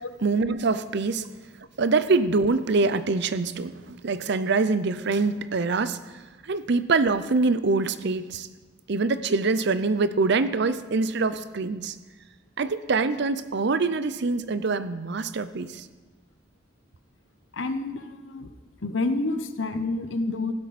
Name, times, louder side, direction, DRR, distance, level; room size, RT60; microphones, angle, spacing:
voice 1, 0.2-1.2 1.8-6.0 6.4-8.5 8.9-12.0 12.6-15.9, right 3 dB, 60° right, 14 dB, 0.6 m, -24 dB
voice 2, 17.5-18.5 18.8-20.5, left 2 dB, 70° left, 10 dB, 0.9 m, -28 dB
16.0 x 12.0 x 4.2 m, 1.2 s
head